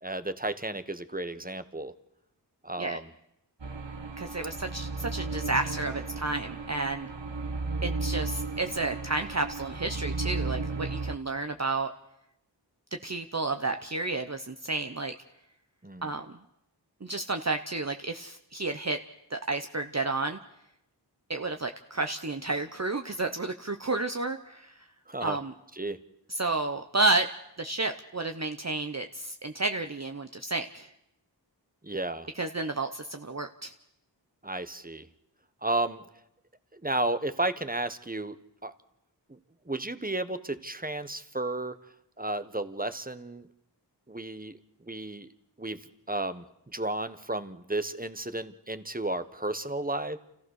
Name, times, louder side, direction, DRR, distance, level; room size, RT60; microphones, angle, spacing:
voice 1, 0.0-1.9 2.6-3.1 15.8-16.1 25.1-25.4 25.7-26.0 31.8-32.3 34.4-35.1 35.6-36.0 36.7-38.4 38.6-38.7 39.3-39.4 39.6-41.8 42.2-43.5 44.1-44.6 44.8-45.3 45.6-50.2, right 2 dB, 20° right, 12 dB, 1.1 m, -33 dB
sound 1, 3.6-11.2, right 3 dB, 75° right, 1.4 m, -34 dB
voice 2, 4.2-7.1 7.8-11.9 13.0-15.1 16.0-16.4 17.0-19.0 19.3-20.4 21.3-24.8 25.2-25.5 26.3-27.3 27.6-30.9 32.4-33.7, right 2 dB, 35° right, 6 dB, 0.9 m, -31 dB
28.0 x 15.0 x 6.5 m, 0.82 s
wide cardioid pair, 40°, 43 cm